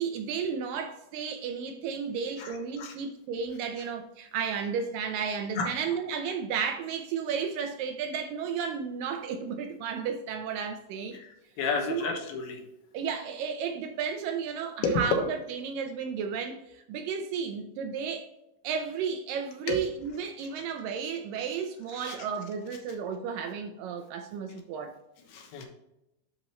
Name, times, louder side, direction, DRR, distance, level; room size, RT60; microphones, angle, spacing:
voice 1, 0.0-11.2 11.9-12.1 12.9-18.3 18.6-24.9, right 6 dB, 75° right, 2.1 m, -33 dB
voice 2, 2.4-2.9 5.5-5.7 11.1-11.3 11.6-12.6 14.8-15.0 19.7-19.8 21.9-22.2 25.3-25.7, left 4 dB, 85° left, 3.2 m, -31 dB
10.5 x 5.1 x 3.1 m
omnidirectional pair, 4.3 m